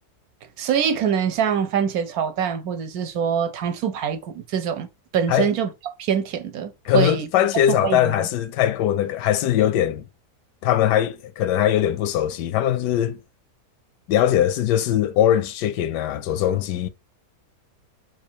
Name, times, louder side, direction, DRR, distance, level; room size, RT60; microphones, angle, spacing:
voice 1, 0.6-4.9 5.1-5.7 6.0-7.3 7.7-8.3, right 8 dB, 70° right, 1.0 m, -24 dB
voice 2, 6.8-10.1 10.6-13.2 14.1-16.9, left 11 dB, 85° left, 1.2 m, -21 dB
4.1 x 2.5 x 4.4 m
omnidirectional pair, 1.8 m